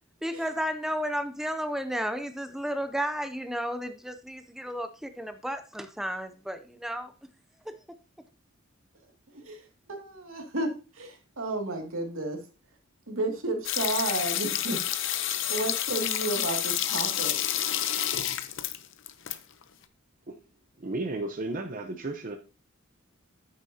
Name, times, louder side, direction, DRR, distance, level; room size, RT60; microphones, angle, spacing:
voice 1, 0.2-7.1 7.7-7.8, equal, ahead, 8 dB, 0.5 m, -33 dB
voice 2, 9.9-10.7 11.0-12.4 13.1-14.8 15.1-15.2 15.5-17.4, right 2 dB, 75° right, 2 dB, 2.3 m, -32 dB
sound 1, 13.6-19.4 19.6-19.7, left 11 dB, 65° left, 0.7 m, -29 dB
voice 3, 20.8-22.4, right 2 dB, 40° right, 5 dB, 0.8 m, -33 dB
9.7 x 9.1 x 2.8 m, 0.32 s
head